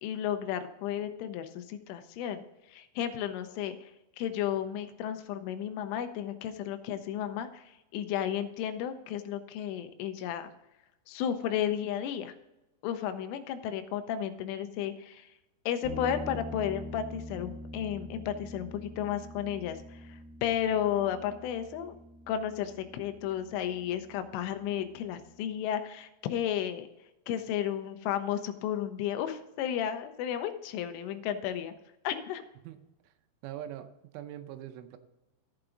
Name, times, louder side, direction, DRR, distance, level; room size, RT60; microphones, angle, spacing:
voice 1, 0.0-2.4 2.7-3.9 4.2-10.5 11.1-12.3 12.8-15.3 15.7-22.0 22.3-26.9 27.3-31.7 32.0-32.4, left 10 dB, 85° left, 8 dB, 3.2 m, -33 dB
sound 1, 15.8-25.3, left 1 dB, 30° left, 2.0 m, -45 dB
voice 2, 32.6-33.1 33.4-35.0, right 11 dB, 85° right, 9 dB, 3.1 m, -43 dB
14.5 x 5.9 x 3.8 m, 0.97 s
omnidirectional pair, 5.7 m